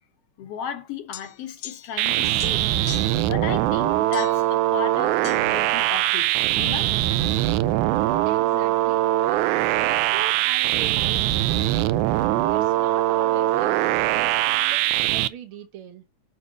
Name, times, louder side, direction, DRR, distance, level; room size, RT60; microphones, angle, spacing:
voice 1, 0.4-2.6 3.3-6.9, left 8 dB, 65° left, 1.8 m, -34 dB
sound 1, 1.1-2.1 2.4-3.3 4.1-4.5 5.2-5.4, left 13 dB, 85° left, 1.3 m, -40 dB
sound 2, 2.0-15.3, right 14 dB, 85° right, 2.0 m, -22 dB
voice 2, 8.2-9.1 9.7-11.8 12.5-16.0, right 8 dB, 70° right, 1.3 m, -39 dB
6.8 x 5.0 x 6.2 m
omnidirectional pair, 3.4 m